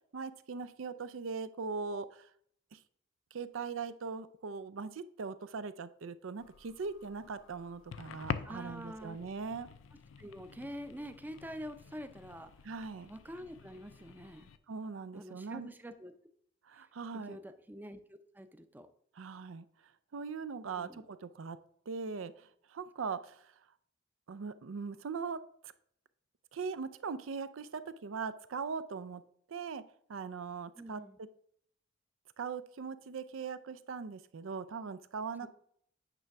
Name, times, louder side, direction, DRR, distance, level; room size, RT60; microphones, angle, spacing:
voice 1, 0.1-2.3 2.7-2.8 3.3-9.7 12.6-13.1 14.7-15.7 16.6-17.4 19.2-19.7 20.1-21.6 21.9-23.5 24.3-25.7 26.5-29.2 29.5-29.8 30.1-31.3 32.4-35.5, right 5 dB, 80° right, 14 dB, 0.5 m, -40 dB
sound 1, 6.4-14.6, left 6 dB, 70° left, 0.5 m, -47 dB
voice 2, 8.4-9.2 10.2-12.5 13.1-14.5 15.1-16.1 16.8-16.9 17.1-18.9 20.6-21.0 30.8-31.2 35.4-35.5, equal, 10° right, 9 dB, 0.5 m, -46 dB
9.0 x 3.3 x 5.8 m, 0.67 s
head